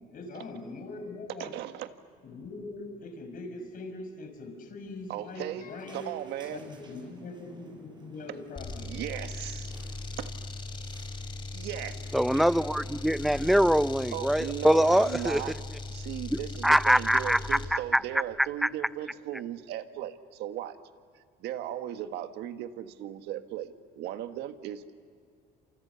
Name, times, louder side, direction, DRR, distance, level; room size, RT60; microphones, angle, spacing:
voice 1, 0.1-1.5 2.2-6.1 6.4-9.0, left 2 dB, 55° left, 6 dB, 5.7 m, -42 dB
voice 2, 1.4-1.9 5.1-5.7 5.9-6.6 8.8-9.7 10.2-10.3 11.5-12.0 14.1-15.6 15.9-20.8 21.4-25.0, right 12 dB, 85° right, 9 dB, 1.5 m, -37 dB
sound 1, 5.0-14.1, right 3 dB, 25° right, 6.3 m, -55 dB
sound 2, 8.6-17.8, left 2 dB, 30° left, 3.1 m, -39 dB
voice 3, 12.1-15.4 16.3-18.0 18.4-18.7, equal, ahead, 15 dB, 0.6 m, -24 dB
29.5 x 27.5 x 6.9 m, 2.2 s
cardioid pair, 110°, 17 cm